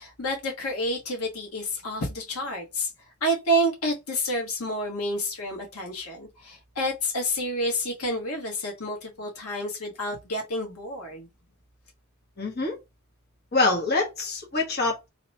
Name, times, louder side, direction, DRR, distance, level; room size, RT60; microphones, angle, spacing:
voice 1, 0.0-2.9 3.2-11.3, equal, 85° left, 1.4 m, -29 dB
voice 2, 12.4-12.8 13.5-15.1, left 3 dB, 50° left, 1.4 m, -25 dB
2.9 x 2.9 x 4.3 m
head